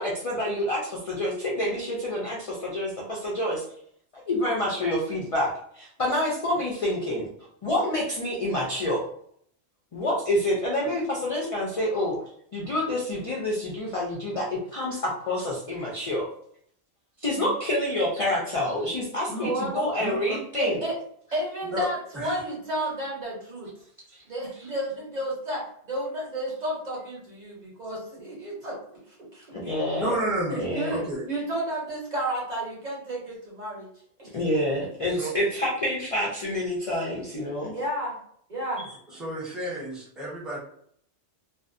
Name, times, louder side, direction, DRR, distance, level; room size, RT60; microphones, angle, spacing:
voice 1, 0.0-3.6 4.1-7.3 7.6-9.1 9.9-12.2 12.5-16.3 17.2-20.8 24.1-24.2 29.5-30.1 30.6-31.0 34.3-37.7, left 1 dB, 50° left, -3 dB, 0.4 m, -28 dB
voice 2, 19.4-19.9 20.6-20.9 21.3-23.7 24.3-28.8 29.1-29.8 30.5-33.9 34.2-34.3 34.8-34.9 37.7-38.2 38.5-38.8, right 1 dB, 40° right, -4 dB, 0.8 m, -32 dB
voice 3, 20.0-20.4 21.6-21.9 22.1-22.4 30.0-30.6 30.9-31.2 35.1-35.4 38.8-40.6, right 1 dB, ahead, -5 dB, 0.5 m, -31 dB
2.5 x 2.0 x 2.5 m, 0.65 s
omnidirectional pair, 1.2 m